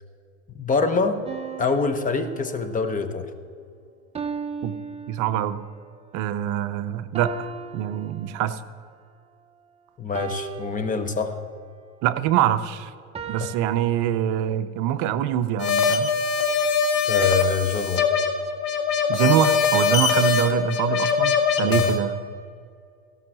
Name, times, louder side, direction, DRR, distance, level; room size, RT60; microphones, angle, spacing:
voice 1, 0.6-1.2 1.6-3.3 10.0-11.3 13.4-13.5 17.0-18.1 21.6-21.9, left 4 dB, 20° left, 8 dB, 0.9 m, -25 dB
sound 1, 1.3-3.0 4.1-5.8 7.1-8.8 10.1-11.6 13.1-13.9, right 6 dB, 15° right, 0.7 m, -37 dB
voice 2, 5.1-5.6 6.1-7.5 7.7-8.6 12.0-12.9 13.3-16.1 19.1-22.2, right 11 dB, 55° right, 11 dB, 0.6 m, -24 dB
sound 2, 15.6-22.0, left 6 dB, 55° left, 1.5 m, -22 dB
16.0 x 5.5 x 6.1 m, 2.3 s
supercardioid pair, 115°, 38 cm